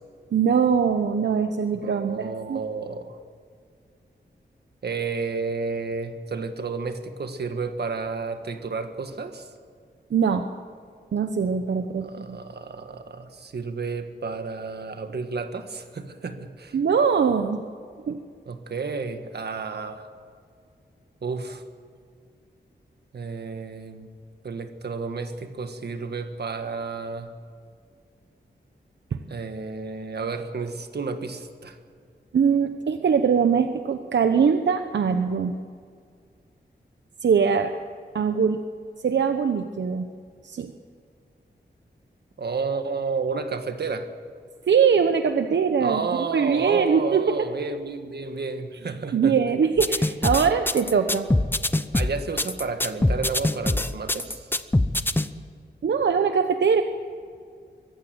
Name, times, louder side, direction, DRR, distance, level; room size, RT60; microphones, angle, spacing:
voice 1, 0.3-2.7 10.1-10.5 11.1-12.4 16.7-17.7 18.1-18.2 29.1-29.2 32.3-35.5 37.2-37.7 38.1-38.6 39.0-40.1 40.4-40.7 44.7-47.3 49.1-51.3 55.8-56.8, right 6 dB, 85° right, 7 dB, 0.9 m, -22 dB
voice 2, 1.8-3.2 4.8-9.5 12.0-16.8 18.5-20.1 21.2-21.6 23.1-24.1 24.4-27.3 29.3-31.8 42.4-44.1 45.8-49.4 51.9-54.5, right 4 dB, 65° right, 7 dB, 1.7 m, -31 dB
sound 1, 49.8-55.3, left 1 dB, 10° left, 0.7 m, -23 dB
23.5 x 15.5 x 7.9 m, 2.2 s
wide cardioid pair, 130°, 18 cm